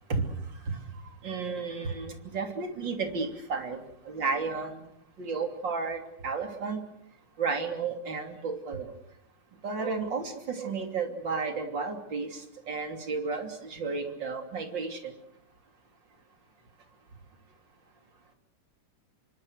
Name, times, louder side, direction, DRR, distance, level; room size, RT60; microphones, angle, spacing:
voice 1, 1.2-4.8 5.2-6.8 7.4-8.9 9.6-15.1, right 4 dB, 65° right, 5 dB, 3.8 m, -32 dB
28.0 x 24.5 x 6.5 m, 0.71 s
omnidirectional pair, 2.2 m